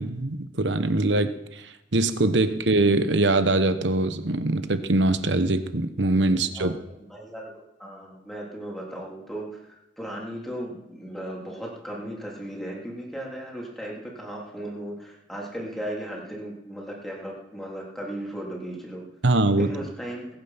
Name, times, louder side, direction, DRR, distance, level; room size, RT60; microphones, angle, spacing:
voice 1, 0.0-6.8 19.2-19.8, right 2 dB, 70° right, 10 dB, 1.1 m, -23 dB
voice 2, 6.3-6.8 7.1-7.5 7.8-19.0 19.6-20.3, right 1 dB, ahead, -3 dB, 3.5 m, -36 dB
21.0 x 9.1 x 5.9 m, 0.90 s
head